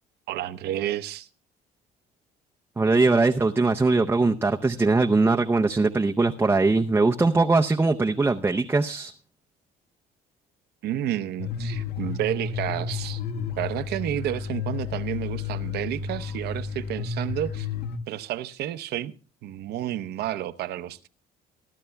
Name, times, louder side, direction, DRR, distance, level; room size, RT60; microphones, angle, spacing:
voice 1, 0.3-1.3 10.8-13.2 13.6-17.7 18.1-19.1 19.4-21.1, right 12 dB, 75° right, 0.8 m, -30 dB
voice 2, 2.8-9.1, right 3 dB, 15° right, 0.6 m, -21 dB
sound 1, 11.4-18.0, left 6 dB, 75° left, 1.6 m, -32 dB
24.0 x 12.0 x 2.3 m
cardioid pair, 110°, 17 cm